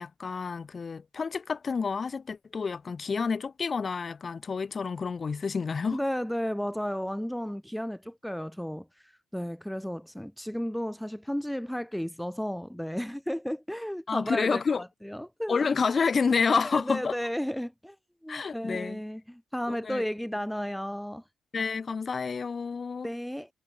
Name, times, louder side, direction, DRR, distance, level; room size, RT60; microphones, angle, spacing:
voice 1, 0.0-6.0 14.1-14.8 15.5-17.1 18.3-19.0 19.7-20.0 21.5-23.1, left 5 dB, 35° left, 5.6 m, -29 dB
voice 2, 5.9-15.6 16.7-17.9 18.2-21.2 23.0-23.5, equal, ahead, 3.4 m, -33 dB
cardioid pair, 90°, 0 cm